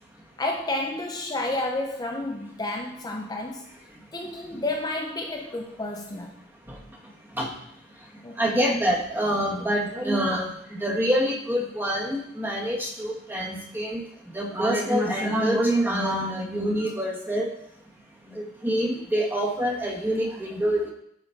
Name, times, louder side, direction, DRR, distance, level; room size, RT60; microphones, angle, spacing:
voice 1, 0.4-3.6 4.1-6.4 8.2-8.8, left 2 dB, 20° left, 0 dB, 0.6 m, -31 dB
voice 2, 8.4-14.0 14.3-17.5 18.3-20.9, equal, 10° right, -1 dB, 1.3 m, -26 dB
11.0 x 4.1 x 4.4 m, 0.74 s
head